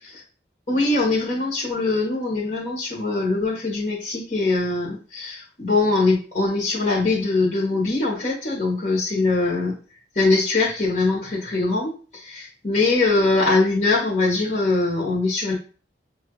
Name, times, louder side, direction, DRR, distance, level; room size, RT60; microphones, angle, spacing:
voice 1, 0.7-9.7 10.1-15.5, left 3 dB, 45° left, -6 dB, 1.3 m, -22 dB
6.8 x 2.5 x 3.0 m, 0.38 s
head